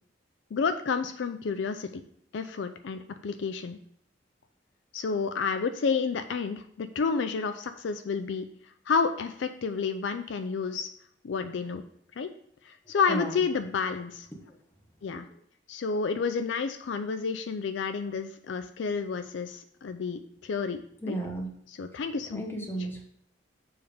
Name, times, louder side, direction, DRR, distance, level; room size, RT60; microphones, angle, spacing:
voice 1, 0.5-2.0 2.3-3.8 4.9-8.5 8.9-10.9 11.2-11.8 12.2-12.3 12.6-14.3 15.0-15.2 15.7-21.2 21.7-22.4, left 5 dB, 65° left, 9 dB, 0.4 m, -30 dB
voice 2, 21.0-21.5 22.3-23.0, right 1 dB, 10° left, 1 dB, 1.0 m, -33 dB
7.0 x 3.3 x 5.0 m, 0.68 s
head